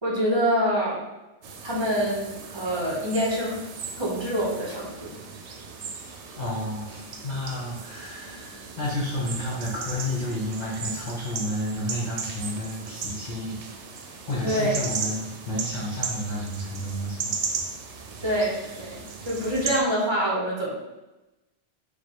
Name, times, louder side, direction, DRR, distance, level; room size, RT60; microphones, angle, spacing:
voice 1, 0.0-1.0 1.6-3.6 4.0-5.1 14.4-14.9 18.2-20.7, equal, 25° right, -5 dB, 0.7 m, -26 dB
sound 1, 1.4-19.8, right 5 dB, 75° right, 0.9 m, -36 dB
voice 2, 6.4-13.8 14.2-17.4, left 1 dB, 45° left, -6 dB, 0.8 m, -31 dB
4.9 x 2.3 x 2.9 m, 1.0 s
omnidirectional pair, 1.2 m